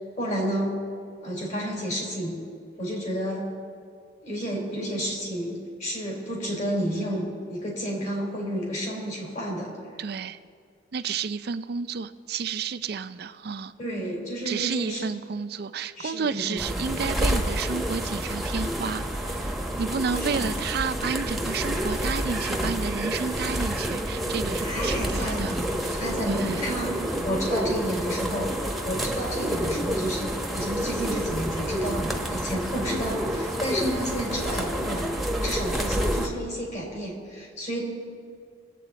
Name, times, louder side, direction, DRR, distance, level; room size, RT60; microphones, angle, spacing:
voice 1, 0.2-0.8 1.2-2.4 2.8-3.5 4.2-9.7 13.8-15.1 16.0-16.6 20.1-20.5 24.6-27.0 27.2-28.5 28.8-35.1 35.4-37.8, equal, 45° left, -2 dB, 3.9 m, -31 dB
voice 2, 10.0-10.4 10.9-13.7 14.5-26.0 26.3-26.7, right 5 dB, 60° right, 12 dB, 0.5 m, -31 dB
sound 1, 16.6-36.3, right 1 dB, ahead, 1.0 m, -29 dB
22.0 x 8.4 x 4.0 m, 2.2 s
head